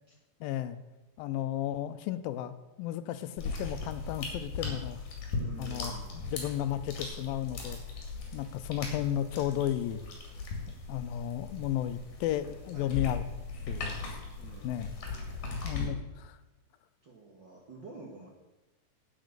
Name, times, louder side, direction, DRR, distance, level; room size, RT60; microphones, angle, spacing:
voice 1, 0.4-0.8 1.2-5.0 5.6-6.0 6.3-7.8 8.3-10.0 10.9-13.2 13.7-14.2 14.6-14.9 15.6-16.4, left 11 dB, 90° left, 12 dB, 2.4 m, -33 dB
sound 1, 3.4-15.9, left 4 dB, 65° left, 3.8 m, -38 dB
voice 2, 5.4-6.2 12.7-12.9 14.4-14.9 15.8-16.0 17.0-18.3, right 3 dB, 50° right, -1 dB, 1.4 m, -49 dB
9.1 x 8.9 x 6.6 m, 1.0 s
omnidirectional pair, 4.1 m